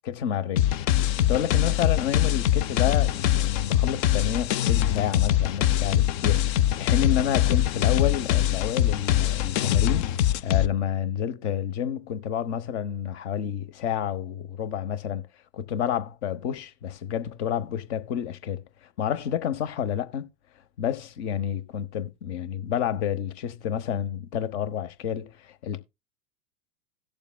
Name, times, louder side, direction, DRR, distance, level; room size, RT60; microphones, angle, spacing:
voice 1, 0.0-0.7 1.3-15.3 15.5-20.3 20.8-25.8, left 9 dB, 55° left, 1.0 m, -29 dB
sound 1, 0.6-10.7, left 12 dB, 35° left, 0.4 m, -23 dB
17.0 x 7.0 x 2.2 m
hypercardioid pair, 95°, 41 cm